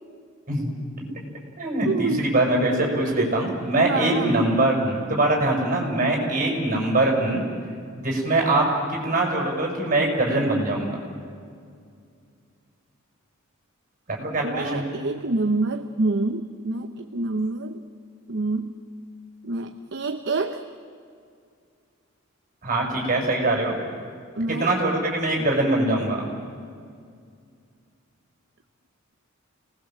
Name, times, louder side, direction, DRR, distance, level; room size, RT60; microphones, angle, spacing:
voice 1, 0.5-1.0 1.6-7.4 8.0-11.0 14.1-14.9 22.6-23.8 24.5-26.2, right 2 dB, 40° right, 0 dB, 7.0 m, -23 dB
voice 2, 1.8-2.3 3.0-3.4 3.8-4.5 14.4-17.8 18.3-18.7 19.4-20.6 24.4-24.7, right 3 dB, 55° right, 7 dB, 0.9 m, -27 dB
29.5 x 20.0 x 7.7 m, 2.3 s
head